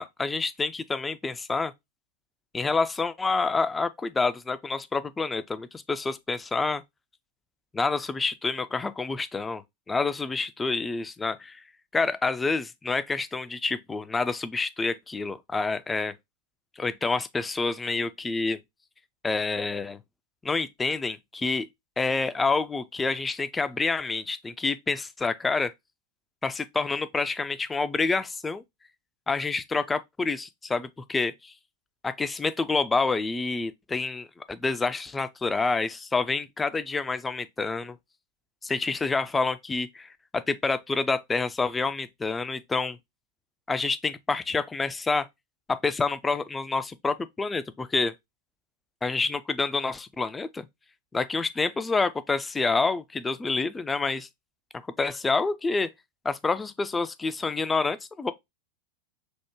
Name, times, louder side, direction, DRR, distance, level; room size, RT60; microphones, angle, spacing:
voice 1, 0.0-1.7 2.5-6.8 7.7-9.6 9.9-11.6 11.9-16.1 16.8-18.6 19.2-20.0 20.4-21.7 22.0-25.7 26.4-28.6 29.3-31.5 32.0-38.0 38.6-43.0 43.7-45.3 45.7-48.1 49.0-50.7 51.1-54.3 55.0-55.9 56.2-58.3, left 4 dB, 10° left, 0.3 m, -28 dB
3.5 x 2.1 x 3.0 m
figure-of-eight pair, 90°, 0 cm